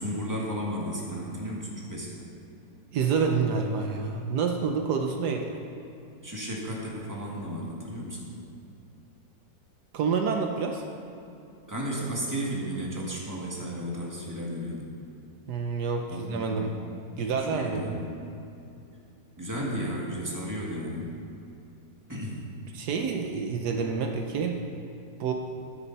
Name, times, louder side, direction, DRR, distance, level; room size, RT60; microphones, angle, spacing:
voice 1, 0.0-2.3 6.2-8.3 11.7-14.8 16.1-16.8 17.3-18.2 19.4-21.1 22.1-22.4, equal, 10° right, -4 dB, 1.9 m, -34 dB
voice 2, 2.9-5.6 9.9-10.8 15.5-16.8 17.2-18.0 22.7-24.6 25.2-25.3, right 5 dB, 75° right, 3 dB, 1.3 m, -28 dB
14.0 x 10.0 x 4.2 m, 2.7 s
omnidirectional pair, 1.8 m